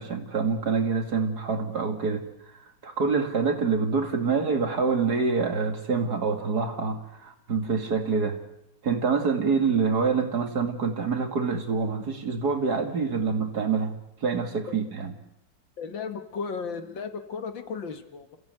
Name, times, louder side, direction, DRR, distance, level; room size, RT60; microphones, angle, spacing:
voice 1, 0.0-2.2 2.8-8.4 8.8-15.1, right 5 dB, 55° right, 6 dB, 2.8 m, -26 dB
voice 2, 15.8-18.4, left 5 dB, 75° left, 8 dB, 2.5 m, -35 dB
29.5 x 16.0 x 9.2 m, 0.89 s
omnidirectional pair, 2.1 m